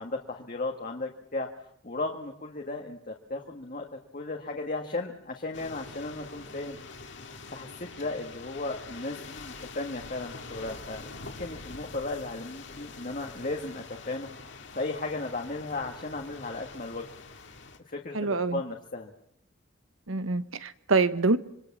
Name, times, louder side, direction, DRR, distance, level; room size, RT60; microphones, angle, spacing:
voice 1, 0.0-1.5 1.8-6.8 7.5-14.3 14.7-17.1 17.9-19.1, left 2 dB, 40° left, 1.7 m, -35 dB
sound 1, 5.5-17.8, left 3 dB, 60° left, 2.4 m, -45 dB
voice 2, 18.1-18.6 20.1-21.4, right 3 dB, 90° right, 1.2 m, -25 dB
26.0 x 23.0 x 7.4 m
head